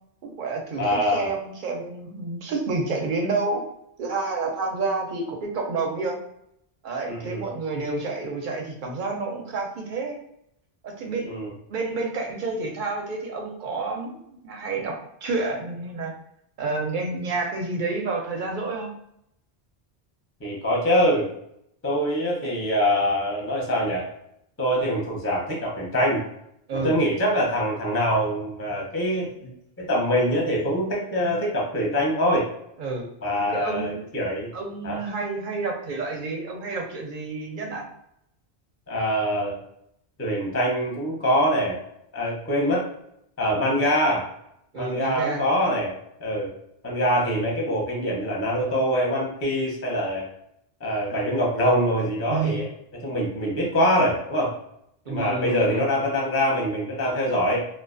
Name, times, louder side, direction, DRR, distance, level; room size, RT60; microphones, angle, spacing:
voice 1, 0.2-3.6 4.0-6.2 6.8-10.2 10.8-11.3 11.7-16.1 16.6-18.9 26.7-26.9 32.8-33.1 33.5-34.0 34.5-37.9 44.7-45.4 52.3-52.6 55.1-55.8, right 3 dB, 55° right, 1 dB, 0.7 m, -29 dB
voice 2, 0.8-1.3 7.1-7.4 11.2-11.5 20.4-21.3 21.8-24.0 24.6-26.2 26.8-29.5 29.8-32.4 33.2-34.5 34.8-35.0 38.9-39.6 40.2-41.8 42.1-42.9 43.4-44.3 44.7-45.9 46.2-46.5 46.8-50.3 50.8-52.7 53.0-54.6 55.1-57.6, equal, 20° left, -3 dB, 0.5 m, -24 dB
2.3 x 2.2 x 2.4 m, 0.75 s
omnidirectional pair, 1.1 m